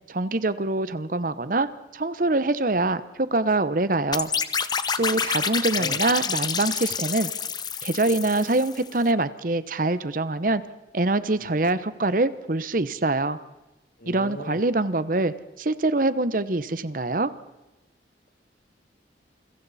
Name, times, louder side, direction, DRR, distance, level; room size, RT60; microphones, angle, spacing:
voice 1, 0.1-4.3 5.0-7.3 7.8-10.6 10.9-13.4 14.1-17.3, right 2 dB, 50° right, 14 dB, 0.9 m, -24 dB
sound 1, 4.1-8.9, left 6 dB, 25° left, 0.9 m, -28 dB
voice 2, 5.0-5.5 5.8-6.0 11.4-11.6 14.0-14.6, left 1 dB, 50° left, 7 dB, 2.2 m, -39 dB
28.5 x 22.0 x 4.2 m, 1.0 s
head